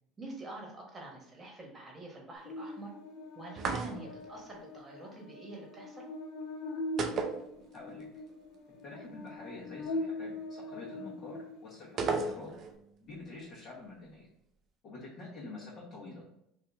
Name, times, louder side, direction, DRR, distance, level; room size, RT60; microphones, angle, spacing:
voice 1, 0.2-2.9 3.3-6.0, right 2 dB, 25° right, -1 dB, 1.1 m, -46 dB
Buzz, 2.4-11.9, left 2 dB, 75° left, 0.7 m, -41 dB
sound 1, 3.6-4.3 7.0-8.0 8.3-8.4 12.0-12.8, right 4 dB, 45° right, 0.4 m, -34 dB
voice 2, 7.7-8.1 8.8-12.5 13.0-14.3 14.8-16.3, left 2 dB, 45° left, -7 dB, 1.1 m, -47 dB
2.7 x 2.6 x 3.5 m, 0.77 s
supercardioid pair, 95°, 0 cm